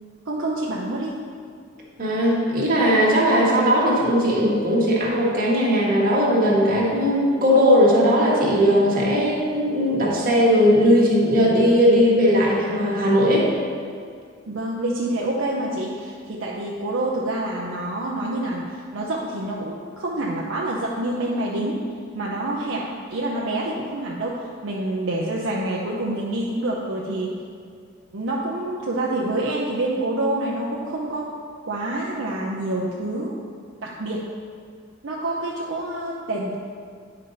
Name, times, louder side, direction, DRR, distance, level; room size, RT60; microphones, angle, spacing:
voice 1, 0.3-1.2 14.5-21.8 22.1-27.4 28.1-31.3 31.6-33.4 33.8-34.2 35.0-36.5, right 1 dB, 70° right, -4 dB, 0.7 m, -27 dB
voice 2, 2.0-13.5, equal, 50° right, -4 dB, 1.7 m, -18 dB
9.4 x 5.4 x 4.0 m, 2.1 s
head